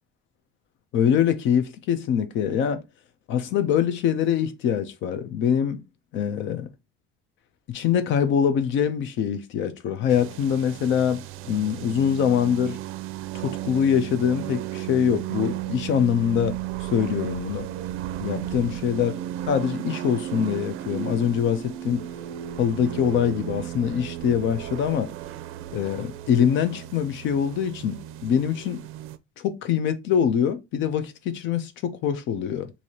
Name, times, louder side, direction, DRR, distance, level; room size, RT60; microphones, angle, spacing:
voice 1, 0.9-2.8 3.3-5.8 6.1-6.7 7.7-12.8 13.3-17.7 18.2-19.2 19.5-22.0 22.6-25.1 25.7-28.8 29.4-32.7, left 8 dB, 65° left, 0.7 m, -24 dB
sound 1, 10.1-29.2, right 13 dB, 80° right, 0.4 m, -34 dB
4.7 x 2.8 x 2.8 m
cardioid pair, 165°, 21 cm